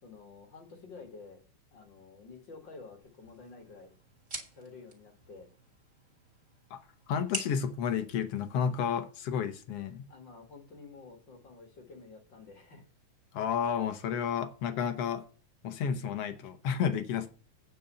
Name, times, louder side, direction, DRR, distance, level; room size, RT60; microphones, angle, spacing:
voice 1, 0.0-1.4 1.7-3.9 4.5-5.5 10.1-12.9, left 4 dB, 40° left, 2.0 m, -50 dB
sound 1, 3.0-9.0, right 2 dB, 20° right, 2.8 m, -46 dB
voice 2, 7.1-10.1 13.3-15.2 15.6-17.3, left 7 dB, 75° left, 1.4 m, -31 dB
9.3 x 5.5 x 6.8 m
omnidirectional pair, 3.7 m